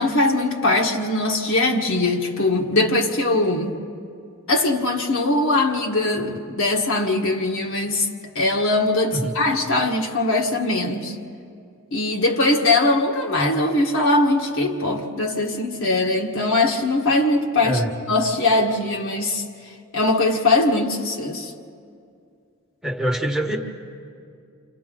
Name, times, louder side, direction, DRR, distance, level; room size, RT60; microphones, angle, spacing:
voice 1, 0.0-3.8 4.5-8.1 8.4-11.2 11.9-17.8 18.1-21.5, left 2 dB, 60° left, 1.7 m, -21 dB
voice 2, 17.6-17.9 22.8-23.6, right 1 dB, ahead, 1.4 m, -24 dB
30.0 x 26.5 x 3.9 m
head